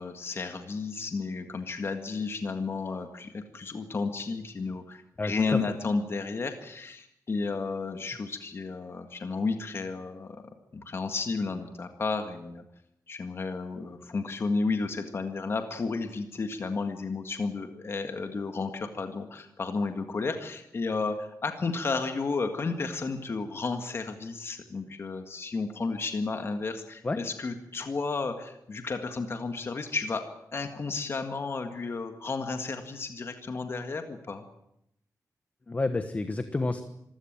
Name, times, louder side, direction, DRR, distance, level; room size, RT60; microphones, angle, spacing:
voice 1, 0.0-10.4 10.7-12.6 13.1-30.2 30.5-34.4, left 4 dB, 40° left, 6 dB, 1.8 m, -32 dB
voice 2, 5.2-5.7 27.0-27.2 35.7-36.8, left 2 dB, 25° left, 9 dB, 1.2 m, -30 dB
25.5 x 15.5 x 9.0 m, 0.79 s
wide cardioid pair, 180°, 6 cm